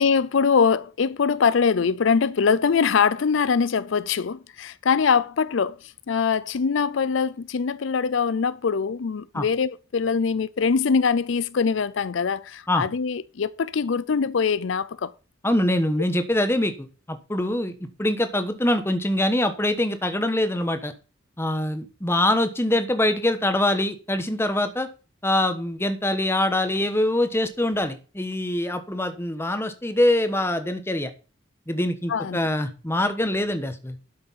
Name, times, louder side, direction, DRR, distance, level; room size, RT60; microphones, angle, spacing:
voice 1, 0.0-15.1 32.1-32.4, left 5 dB, 75° left, 0.5 m, -23 dB
voice 2, 15.4-17.7 18.0-20.9 21.4-24.9 25.2-31.1 31.7-34.0, left 1 dB, 10° left, 1.2 m, -24 dB
12.0 x 6.3 x 5.7 m
head